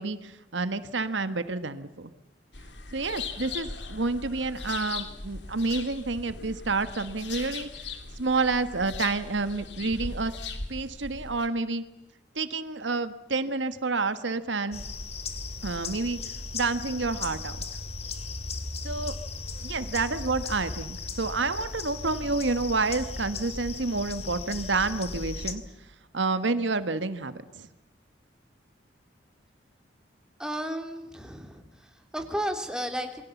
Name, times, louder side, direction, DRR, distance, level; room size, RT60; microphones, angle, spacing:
voice 1, 0.0-2.1 2.9-7.7 8.2-10.3 10.7-11.8 12.3-14.8 15.6-16.2 16.5-17.6 18.8-19.1 19.6-25.6 26.1-27.7, right 3 dB, 85° right, 11 dB, 1.4 m, -29 dB
sound 1, 2.5-11.5, left 4 dB, 70° left, 2.7 m, -39 dB
sound 2, 14.7-25.6, left 3 dB, 35° left, 2.3 m, -37 dB
voice 2, 30.4-33.2, equal, 5° right, 4 dB, 2.9 m, -33 dB
28.0 x 22.0 x 7.2 m, 0.96 s
head